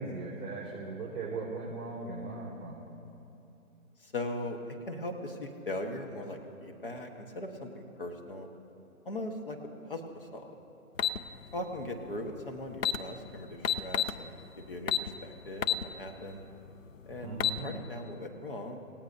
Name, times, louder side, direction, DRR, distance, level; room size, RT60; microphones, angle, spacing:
voice 1, 0.0-2.9 17.2-17.7, right 3 dB, 20° right, -11 dB, 3.8 m, -38 dB
voice 2, 4.0-4.6 4.9-8.5 9.0-9.6 9.8-10.6 11.5-16.4 17.1-18.8, left 1 dB, 35° left, 4 dB, 1.2 m, -39 dB
sound 1, 11.0-11.2 12.4-12.5 12.7-13.0 13.6-14.2 14.9-15.1 15.6-15.8 16.3-16.4 17.2-17.6, left 9 dB, 60° left, 0.6 m, -28 dB
27.5 x 17.5 x 2.7 m, 2.9 s
hypercardioid pair, 175°, 44 cm